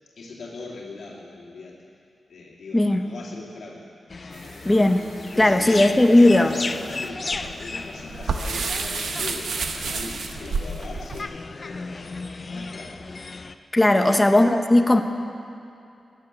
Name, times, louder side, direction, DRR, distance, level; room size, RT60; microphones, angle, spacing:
voice 1, 0.2-1.8 2.3-4.6 5.3-11.3 11.6-13.0 13.9-14.3, left 3 dB, 75° left, -5 dB, 2.6 m, -40 dB
sound 1, 4.1-13.5, left 3 dB, 40° left, 0.6 m, -36 dB
sound 2, 4.3-11.2, right 4 dB, 80° right, 1.0 m, -32 dB
voice 2, 4.6-5.0 5.4-6.5 13.7-15.0, left 1 dB, 15° left, 6 dB, 0.9 m, -17 dB
16.5 x 10.5 x 6.9 m, 2.6 s
wide cardioid pair, 135°, 0 cm